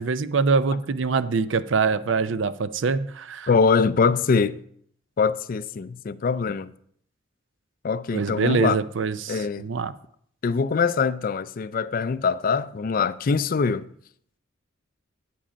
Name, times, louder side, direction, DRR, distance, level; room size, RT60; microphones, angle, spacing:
voice 1, 0.0-3.5 8.1-9.9, right 4 dB, 70° right, 0.5 m, -24 dB
voice 2, 3.5-4.6 5.2-6.7 7.8-8.8 9.3-9.7 10.4-13.9, left 5 dB, 45° left, 0.4 m, -23 dB
8.7 x 7.5 x 5.1 m
head